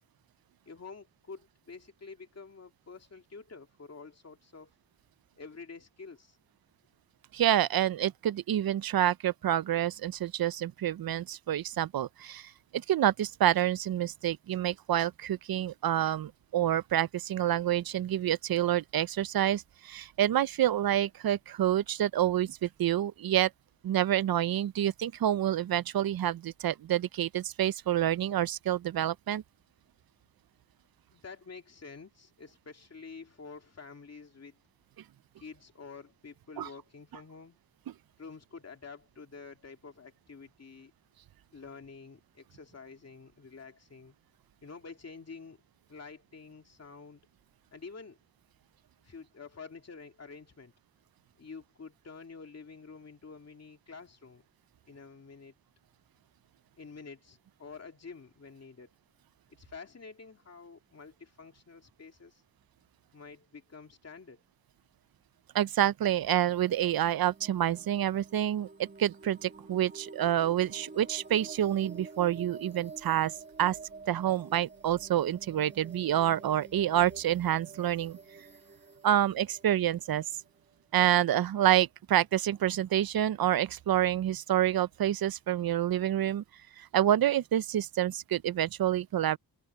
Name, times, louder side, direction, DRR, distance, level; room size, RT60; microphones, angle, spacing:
voice 1, 0.6-4.7 5.4-6.4 31.1-34.6 35.4-37.6 38.2-40.9 41.5-44.2 44.6-45.6 45.9-47.2 47.7-48.2 49.0-50.7 51.4-54.4 54.9-55.5 56.8-58.9 59.5-62.4 63.1-64.4, left 4 dB, 45° left, 2.6 m, -48 dB
voice 2, 7.3-23.5 23.8-29.4 36.6-36.7 65.5-73.3 73.6-73.8 74.1-78.2 79.0-80.2 80.9-86.4 86.8-89.4, right 11 dB, 90° right, 0.5 m, -28 dB
sound 1, 66.2-80.9, right 3 dB, 30° right, 2.2 m, -50 dB
wide cardioid pair, 140°, 35 cm